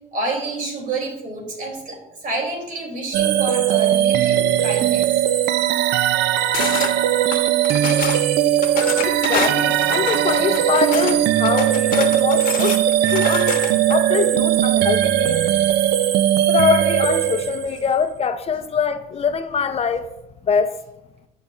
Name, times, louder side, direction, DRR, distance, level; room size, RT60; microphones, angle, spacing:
voice 1, 0.1-5.1, right 2 dB, 55° right, 1 dB, 3.0 m, -28 dB
sound 1, 3.1-17.9, right 11 dB, 85° right, 0.5 m, -19 dB
sound 2, 6.5-6.9 7.3-8.2 8.6-11.2 11.4-13.9, left 8 dB, 55° left, 1.0 m, -28 dB
voice 2, 9.0-13.6 13.9-15.5 16.5-20.1 20.4-20.7, left 6 dB, 35° left, 9 dB, 0.6 m, -23 dB
15.5 x 5.5 x 2.5 m, 0.89 s
cardioid pair, 110°, 17 cm